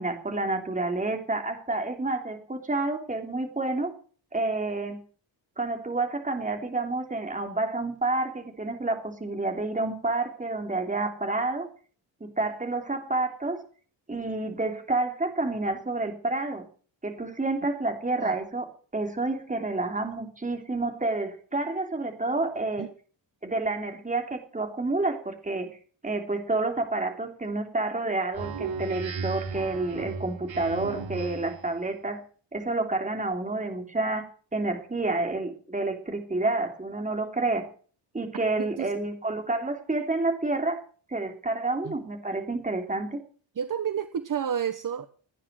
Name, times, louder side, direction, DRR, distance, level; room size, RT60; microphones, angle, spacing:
voice 1, 0.0-3.9 4.3-5.0 5.6-11.7 12.2-13.6 14.1-16.6 17.0-22.9 23.4-25.8 26.0-32.2 32.5-34.3 34.5-37.7 38.1-40.8 41.1-43.2, right 2 dB, 15° right, 4 dB, 3.4 m, -29 dB
Speech synthesizer, 28.3-31.7, right 4 dB, 90° right, 5.8 m, -35 dB
voice 2, 38.6-38.9 41.8-41.9 43.6-45.1, right 8 dB, 45° right, 11 dB, 1.1 m, -30 dB
17.5 x 9.9 x 7.5 m, 0.43 s
wide cardioid pair, 140°, 44 cm